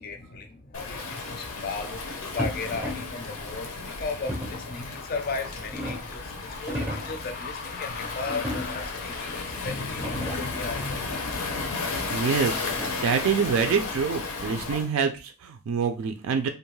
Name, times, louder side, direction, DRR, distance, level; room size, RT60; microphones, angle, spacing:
voice 1, 0.0-12.0, left 4 dB, 40° left, 5 dB, 0.4 m, -35 dB
Waves surf, 0.7-14.9, left 4 dB, 90° left, 0.7 m, -34 dB
sound 1, 2.4-3.2 4.3-4.7 5.4-6.2 6.6-7.2 8.3-9.0 9.6-9.7 9.9-10.6 12.0-13.2, equal, 10° right, 0.5 m, -35 dB
voice 2, 12.1-16.5, right 6 dB, 75° right, 6 dB, 0.3 m, -26 dB
2.5 x 2.2 x 3.1 m, 0.32 s
head